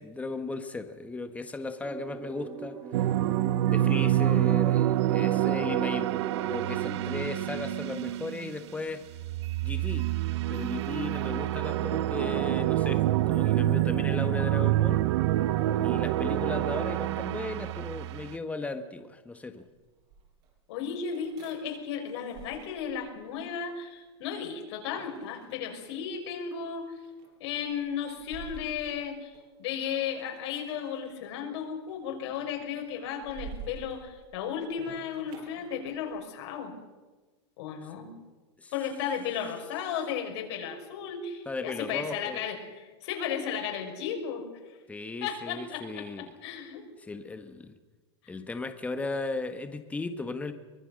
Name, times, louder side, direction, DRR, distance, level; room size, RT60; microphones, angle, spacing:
voice 1, 0.0-2.8 3.6-9.0 9.6-10.1 10.5-15.0 15.8-19.7 38.6-38.7 41.4-42.4 44.9-46.3 47.0-47.7 48.3-50.5, left 3 dB, 10° left, 8 dB, 1.6 m, -36 dB
sound 1, 1.8-7.0, right 5 dB, 25° right, 1.9 m, -42 dB
sound 2, 2.9-8.7 9.1-18.3, right 14 dB, 70° right, 0.8 m, -27 dB
sound 3, 19.7-20.5 21.1-23.4 24.9-26.1 26.8-29.5 29.8-31.3 31.6-32.0 32.3-36.2, right 5 dB, 50° right, 7.3 m, -49 dB
voice 2, 20.7-27.0 27.4-29.3 29.6-36.7 37.6-38.1 38.7-44.5 45.2-46.9, left 7 dB, 70° left, 3 dB, 5.7 m, -34 dB
24.0 x 20.5 x 6.6 m, 1.3 s
supercardioid pair, 135°, 15 cm